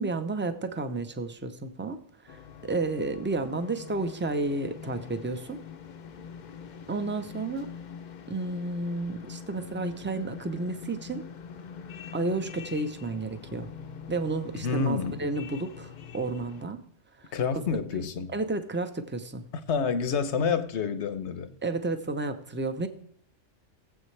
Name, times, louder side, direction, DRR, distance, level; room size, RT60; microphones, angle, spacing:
voice 1, 0.0-2.0 2.2-5.6 6.9-7.7 8.3-11.3 12.1-13.7 14.1-16.8 17.2-17.6 18.3-19.4 21.6-22.9, right 2 dB, 15° right, 0.5 m, -31 dB
sound 1, 2.3-16.7, left 7 dB, 50° left, 0.6 m, -44 dB
voice 2, 14.6-15.2 17.3-18.3 19.5-21.5, left 5 dB, 80° left, 1.2 m, -28 dB
18.0 x 7.7 x 3.3 m
omnidirectional pair, 1.2 m